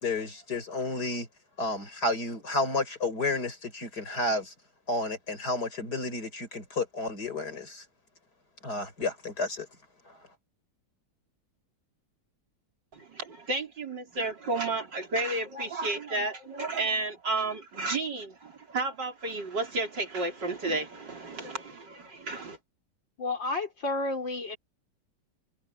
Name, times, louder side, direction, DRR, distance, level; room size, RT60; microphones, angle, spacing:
voice 1, 0.0-1.3 1.6-4.5 4.9-7.8 8.6-9.7, left 2 dB, 60° left, 6.0 m, -31 dB
voice 2, 12.9-22.6, right 3 dB, 75° right, 4.7 m, -32 dB
voice 3, 23.2-24.6, left 2 dB, 85° left, 5.4 m, -31 dB
omnidirectional pair, 1.9 m